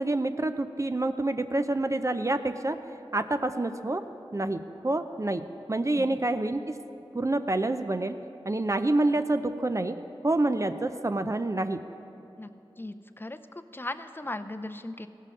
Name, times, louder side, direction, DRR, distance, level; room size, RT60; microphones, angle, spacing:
voice 1, 0.0-2.8 3.1-4.0 4.3-6.8 7.1-8.2 8.5-10.0 10.2-11.8, right 2 dB, 30° right, 9 dB, 0.5 m, -27 dB
voice 2, 12.8-13.4 13.7-15.1, left 2 dB, 20° left, 10 dB, 0.5 m, -37 dB
16.0 x 5.5 x 6.3 m, 2.8 s
wide cardioid pair, 40°, 10 cm